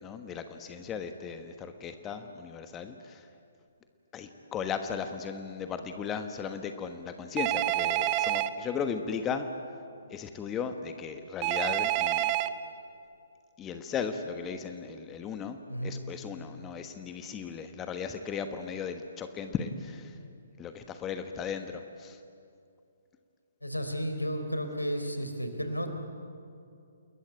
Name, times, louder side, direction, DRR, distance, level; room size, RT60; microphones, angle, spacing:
voice 1, 0.0-3.3 4.1-9.5 10.1-12.3 13.6-15.6 15.8-20.2 20.6-22.2, left 6 dB, 15° left, 7 dB, 1.2 m, -36 dB
Telephone, 7.4-8.5 11.4-12.5, right 14 dB, 25° right, 0.9 m, -27 dB
voice 2, 15.7-16.0 23.6-25.9, equal, 85° left, 6 dB, 3.6 m, -33 dB
29.0 x 21.0 x 9.1 m, 2.5 s
figure-of-eight pair, 130°, 0 cm